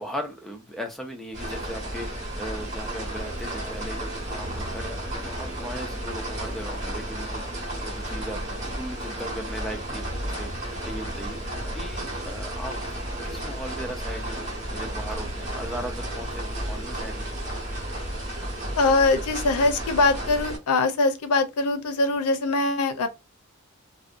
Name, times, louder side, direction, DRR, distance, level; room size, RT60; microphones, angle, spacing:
voice 1, 0.0-12.8 13.2-17.4, equal, ahead, 0.4 m, -38 dB
sound 1, 1.3-20.6, right 1 dB, 30° right, 1.1 m, -33 dB
voice 2, 18.8-23.1, left 3 dB, 90° left, 0.5 m, -22 dB
2.6 x 2.1 x 2.4 m
head